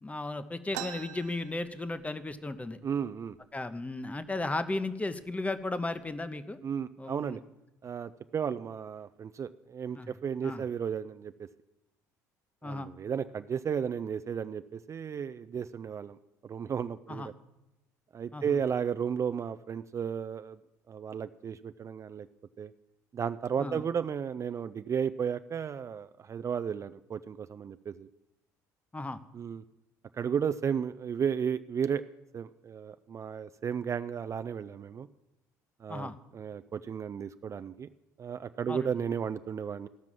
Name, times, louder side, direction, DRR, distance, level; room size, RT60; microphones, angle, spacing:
voice 1, 0.0-2.8 3.5-6.6 7.0-7.4 9.9-10.1 10.4-10.6 12.6-12.9 17.1-17.3 18.3-18.6 23.6-23.8 28.9-29.2 35.9-36.2 38.7-38.9, left 2 dB, 15° left, 12 dB, 0.8 m, -35 dB
sound 1, 0.7-2.3 2.7-2.8 3.0-3.6 4.2-4.4 5.1-5.3 5.7-6.2, right 11 dB, 75° right, 0.6 m, -43 dB
voice 2, 2.8-3.4 6.6-7.4 7.8-11.3 12.6-16.2 16.4-17.3 18.1-20.6 20.9-22.3 22.6-22.7 23.1-28.1 29.3-29.6 30.1-32.0 32.3-35.1 35.8-37.9 38.2-39.9, right 7 dB, 35° right, 12 dB, 0.4 m, -34 dB
14.0 x 5.9 x 7.5 m, 0.96 s
hypercardioid pair, 60°, 9 cm